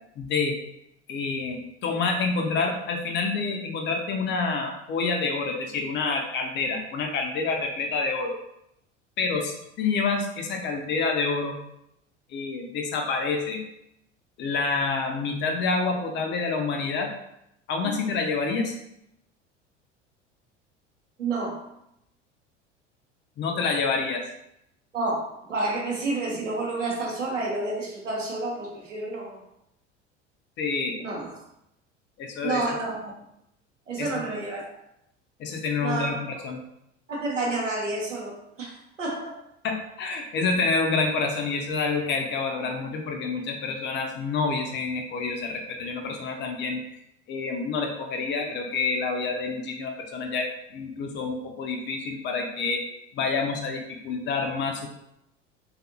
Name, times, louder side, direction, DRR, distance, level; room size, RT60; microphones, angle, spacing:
voice 1, 0.2-0.6 1.1-8.4 9.2-11.5 12.3-13.6 14.4-17.1 17.7-18.8 23.4-24.2 30.6-31.0 32.2-32.6 34.0-34.1 35.4-36.6 39.6-46.8 47.3-52.8 53.1-54.9, left 4 dB, 30° left, 3 dB, 0.5 m, -28 dB
voice 2, 21.2-21.6 24.9-29.4 31.0-31.3 32.4-33.1 33.9-34.7 35.8-36.2 37.1-39.4, right 2 dB, 90° right, -2 dB, 0.7 m, -30 dB
2.6 x 2.4 x 2.5 m, 0.79 s
figure-of-eight pair, 70°, 36 cm